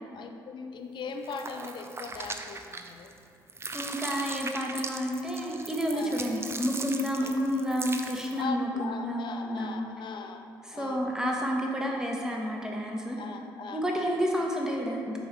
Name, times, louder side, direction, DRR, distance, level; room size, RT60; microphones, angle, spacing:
voice 1, 0.1-3.1 5.9-6.2 7.2-7.4 8.3-10.5 10.7-11.1 13.2-14.1, left 4 dB, 45° left, 6 dB, 0.5 m, -39 dB
sound 1, 1.2-3.2 3.5-8.4, right 3 dB, 20° right, 0.5 m, -39 dB
voice 2, 3.7-9.9 10.7-13.2 13.7-15.2, equal, 5° right, -1 dB, 1.2 m, -30 dB
8.2 x 3.5 x 4.4 m, 2.5 s
figure-of-eight pair, 45°, 11 cm